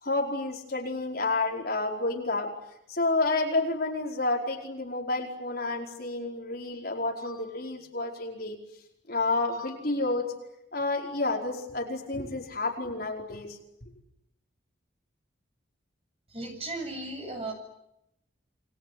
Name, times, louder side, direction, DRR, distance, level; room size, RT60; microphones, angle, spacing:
voice 1, 0.0-2.5 2.9-8.6 9.1-10.2 10.7-13.6, left 2 dB, 50° left, 0 dB, 5.0 m, -30 dB
voice 2, 16.3-17.5, right 2 dB, 30° right, 3 dB, 7.6 m, -36 dB
28.5 x 22.0 x 9.5 m, 0.82 s
head